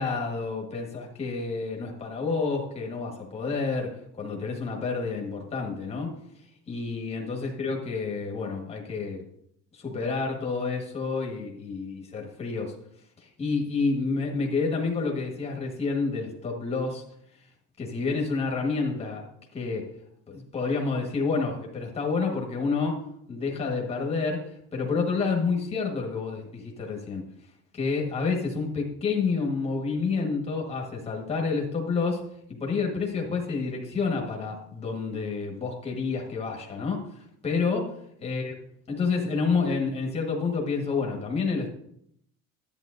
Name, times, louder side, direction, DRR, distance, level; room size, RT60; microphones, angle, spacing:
voice 1, 0.0-6.2 6.7-9.2 9.7-12.7 13.2-17.0 17.8-19.2 19.5-19.9 20.3-23.0 23.3-27.2 27.7-32.2 32.5-37.8 38.2-38.5 38.9-41.7, left 4 dB, 20° left, 0 dB, 1.4 m, -29 dB
11.0 x 8.8 x 2.6 m, 0.72 s
cardioid pair, 180°, 33 cm